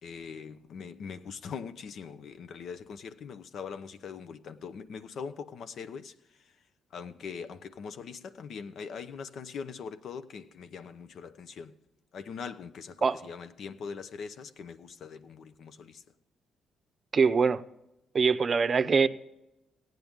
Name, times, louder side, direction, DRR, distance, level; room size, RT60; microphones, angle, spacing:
voice 1, 0.0-6.5 6.9-11.7 12.1-16.0, left 6 dB, 70° left, 0.7 m, -42 dB
voice 2, 17.1-17.6 18.1-19.1, right 5 dB, 45° right, 0.6 m, -23 dB
16.0 x 9.3 x 3.6 m
supercardioid pair, 65°, 0 cm